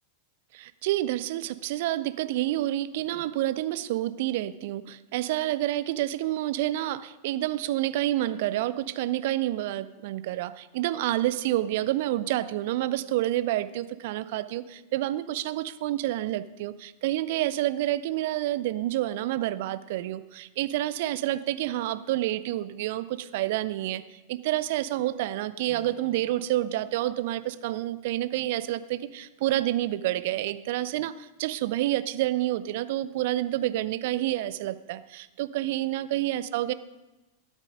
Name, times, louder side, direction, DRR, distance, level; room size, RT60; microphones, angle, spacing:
voice 1, 0.5-36.7, right 14 dB, 50° right, 15 dB, 0.5 m, -28 dB
Strum, 25.7-30.3, left 5 dB, 30° left, 1.8 m, -58 dB
13.0 x 9.0 x 5.1 m, 1.1 s
figure-of-eight pair, 90°, 0 cm